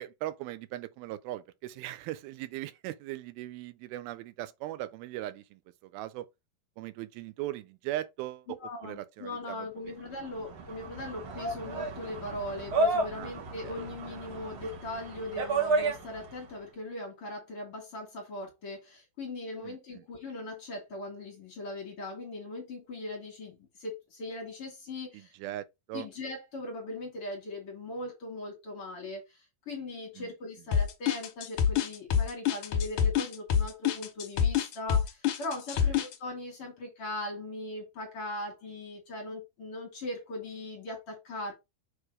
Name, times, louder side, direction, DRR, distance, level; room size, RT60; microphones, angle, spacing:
voice 1, 0.0-5.6 5.9-6.3 6.8-9.7 13.2-13.3 19.6-19.8 25.1-26.1 30.2-30.3, right 14 dB, 85° right, 2.5 m, -39 dB
voice 2, 8.6-25.3 25.9-29.4 29.7-41.5, left 2 dB, 45° left, 2.4 m, -39 dB
sound 1, 10.1-16.5, right 2 dB, 65° right, 1.4 m, -32 dB
sound 2, 30.7-36.1, left 8 dB, 65° left, 2.3 m, -26 dB
6.8 x 3.2 x 4.8 m
omnidirectional pair, 4.3 m